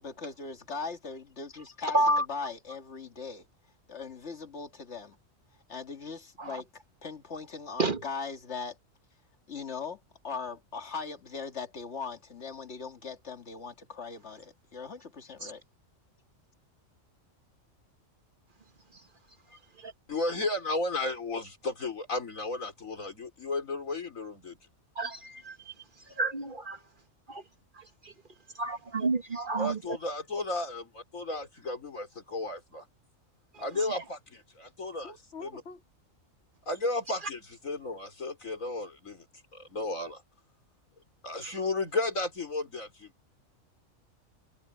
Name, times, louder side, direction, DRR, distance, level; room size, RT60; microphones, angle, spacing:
voice 1, 0.0-3.5 3.9-5.2 5.7-6.7 7.0-8.8 9.5-15.6 35.0-35.8, left 4 dB, 60° left, 2.2 m, -40 dB
voice 2, 1.9-2.2 6.4-6.6 7.8-8.0 15.4-15.5 19.8-19.9 25.0-25.7 26.2-26.8 27.3-27.4 27.8-28.1 28.6-29.8, right 2 dB, 40° right, 1.5 m, -30 dB
voice 3, 20.1-24.6 29.6-32.9 33.6-35.1 35.4-35.6 36.7-39.2 39.5-40.2 41.2-43.3, left 2 dB, 85° left, 4.6 m, -34 dB
omnidirectional pair, 1.4 m